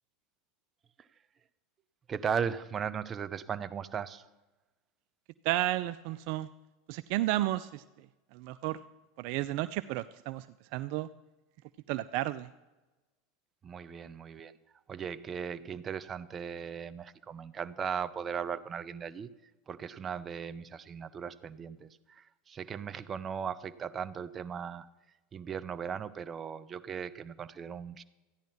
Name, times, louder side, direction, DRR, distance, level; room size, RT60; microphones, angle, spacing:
voice 1, 2.1-4.3 13.6-14.5 14.9-19.3 19.7-24.9 25.3-28.0, right 7 dB, 30° right, 13 dB, 0.7 m, -37 dB
voice 2, 5.4-6.5 6.9-7.8 8.3-8.8 9.2-10.4 10.7-11.1 11.9-12.5, right 15 dB, 60° right, 14 dB, 0.4 m, -32 dB
14.0 x 10.5 x 5.7 m, 1.1 s
hypercardioid pair, 90°, 0 cm